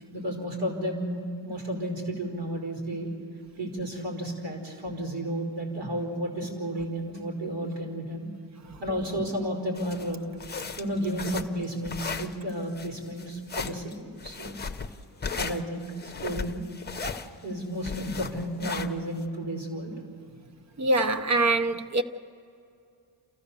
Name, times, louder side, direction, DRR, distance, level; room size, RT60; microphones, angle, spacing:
voice 1, 0.1-3.1 3.6-8.3 8.8-10.3 10.8-14.5 15.3-16.7 17.4-19.9, equal, 70° right, 4.7 m, -32 dB
sound 1, 9.7-19.2, left 5 dB, 20° left, 0.9 m, -36 dB
voice 2, 20.8-22.0, right 2 dB, 40° right, 0.9 m, -24 dB
28.5 x 15.0 x 6.9 m
wide cardioid pair, 125°, 44 cm